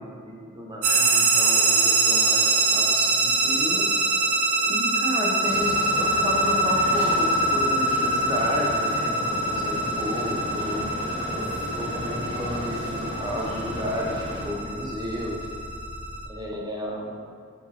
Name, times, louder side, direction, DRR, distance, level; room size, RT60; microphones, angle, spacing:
voice 1, 0.0-3.9 4.6-10.9 11.2-15.5 16.3-17.2, equal, 20° right, -3 dB, 0.5 m, -32 dB
sound 1, 0.8-16.3, right 2 dB, 80° right, 0.5 m, -24 dB
sound 2, 5.4-14.5, left 1 dB, 85° left, 0.9 m, -34 dB
4.8 x 3.2 x 2.7 m, 2.1 s
head